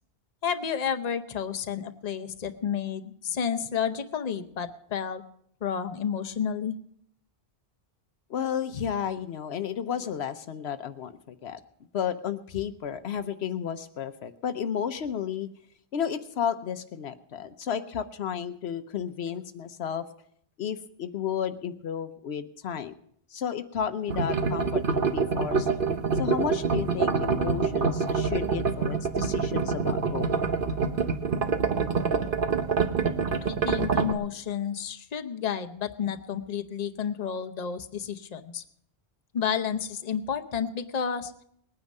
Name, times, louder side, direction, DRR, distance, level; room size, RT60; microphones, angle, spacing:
voice 1, 0.4-5.2 5.6-6.7 33.4-38.6 39.3-41.3, left 7 dB, 40° left, 8 dB, 0.8 m, -31 dB
voice 2, 8.3-11.6 11.9-15.5 15.9-20.0 20.6-22.9 23.3-25.7 26.1-30.3, left 8 dB, 75° left, 11 dB, 1.0 m, -32 dB
sound 1, 24.1-34.1, right 5 dB, 55° right, 1.1 m, -26 dB
19.5 x 9.4 x 5.4 m, 0.69 s
omnidirectional pair, 1.1 m